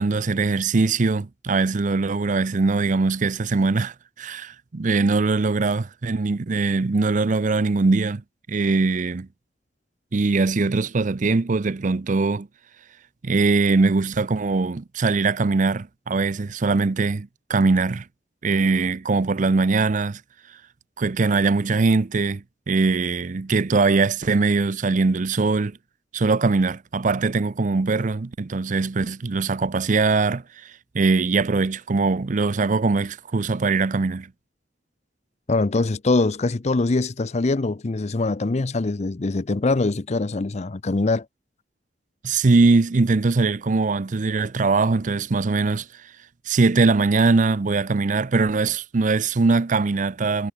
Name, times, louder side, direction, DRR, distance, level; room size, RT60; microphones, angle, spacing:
voice 1, 0.0-8.2 8.5-9.3 10.1-12.5 13.2-18.0 18.4-20.2 21.0-25.8 26.1-34.3 42.2-45.9 46.5-50.5, right 3 dB, 45° right, 0.6 m, -21 dB
voice 2, 35.5-41.3, left 3 dB, 40° left, 0.6 m, -23 dB
head